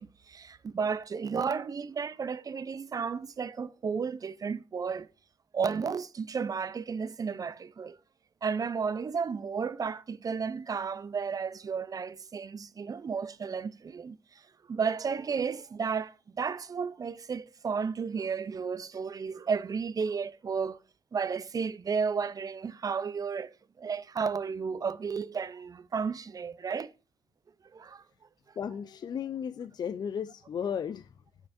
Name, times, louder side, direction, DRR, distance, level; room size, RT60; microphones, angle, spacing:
voice 1, 0.0-5.1 5.5-8.0 8.4-14.4 14.7-20.8 21.1-26.9 27.7-28.0, right 5 dB, 40° right, 0.5 m, -33 dB
voice 2, 28.6-31.1, left 7 dB, 50° left, 0.3 m, -34 dB
6.3 x 5.9 x 2.5 m
cardioid pair, 70°, 9 cm